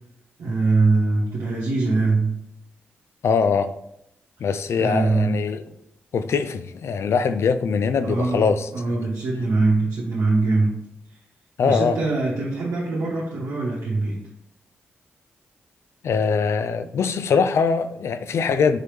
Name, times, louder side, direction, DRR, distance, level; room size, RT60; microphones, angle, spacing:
voice 1, 0.4-2.4 4.8-5.3 8.0-8.5 8.7-10.8 11.6-14.2, right 3 dB, 75° right, 0.9 m, -22 dB
voice 2, 3.2-3.7 4.4-5.6 6.1-8.7 11.6-12.0 16.0-18.8, left 5 dB, 65° left, 0.3 m, -22 dB
4.6 x 3.2 x 3.1 m
supercardioid pair, 45°, 5 cm